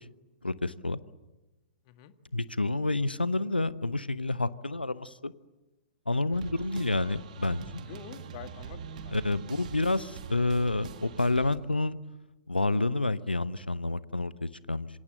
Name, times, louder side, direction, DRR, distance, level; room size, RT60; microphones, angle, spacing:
voice 1, 0.4-1.0 2.3-5.3 6.1-7.8 9.1-12.0 12.5-14.9, left 2 dB, 80° left, 17 dB, 0.9 m, -29 dB
voice 2, 6.1-6.4 7.9-9.7, left 11 dB, 40° left, 10 dB, 1.7 m, -49 dB
sound 1, 6.3-11.6, right 7 dB, 55° right, 2.1 m, -43 dB
27.0 x 25.0 x 7.7 m, 1.1 s
figure-of-eight pair, 105°, 5 cm